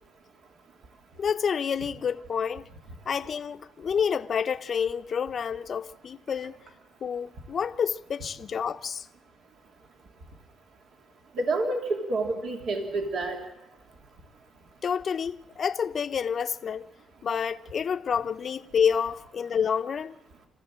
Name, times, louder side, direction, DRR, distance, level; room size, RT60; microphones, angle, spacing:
voice 1, 1.2-2.7 3.1-6.5 7.0-9.0 14.8-16.9 17.2-20.1, left 7 dB, 50° left, 0.7 m, -28 dB
voice 2, 11.4-13.4, right 2 dB, 70° right, 2.6 m, -28 dB
26.0 x 15.0 x 7.5 m
cardioid pair, 90°, 0 cm